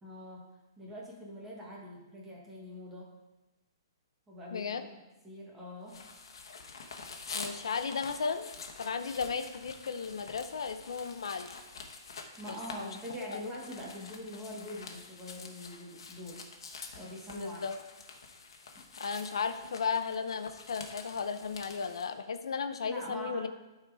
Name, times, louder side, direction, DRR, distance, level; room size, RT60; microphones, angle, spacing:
voice 1, 0.0-3.1 4.3-6.0 12.4-16.5 16.9-17.6 22.8-23.5, left 1 dB, 10° right, -4 dB, 1.5 m, -44 dB
voice 2, 4.5-4.8 7.3-8.5 8.8-11.5 12.5-13.0 13.3-13.4 17.3-17.8 19.0-23.5, left 5 dB, 85° left, 8 dB, 0.8 m, -35 dB
sound 1, 5.9-22.1, left 4 dB, 70° left, 1.3 m, -47 dB
12.5 x 4.3 x 4.8 m, 1.1 s
hypercardioid pair, 170°, 3 cm